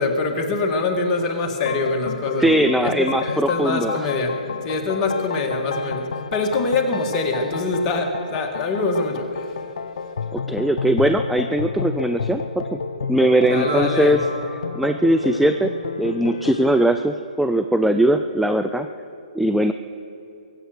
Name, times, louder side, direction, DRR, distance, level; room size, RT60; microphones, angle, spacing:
voice 1, 0.0-2.5 2.8-9.6 13.4-14.2, left 3 dB, 20° left, 3 dB, 1.7 m, -24 dB
sound 1, 1.6-16.8, left 5 dB, 75° left, 0.6 m, -31 dB
voice 2, 2.4-4.0 10.3-12.8 13.1-14.2 14.8-15.7 16.0-18.9 19.3-19.7, right 1 dB, ahead, 8 dB, 0.3 m, -20 dB
sound 2, 12.9-15.9, right 2 dB, 75° right, 4.0 m, -36 dB
22.0 x 8.0 x 6.5 m, 2.8 s
hypercardioid pair, 145°, 4 cm